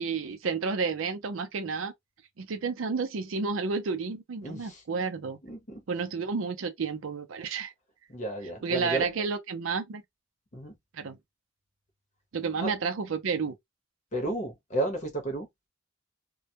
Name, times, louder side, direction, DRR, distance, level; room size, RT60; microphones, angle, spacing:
voice 1, 0.0-1.9 2.4-5.4 5.9-7.7 8.6-10.0 10.9-11.2 12.3-13.6, right 5 dB, 80° right, 0.5 m, -31 dB
voice 2, 4.4-4.8 5.4-5.8 8.1-9.1 10.5-10.7 12.6-12.7 14.1-15.5, right 1 dB, 35° left, 0.8 m, -32 dB
2.2 x 2.1 x 2.7 m
head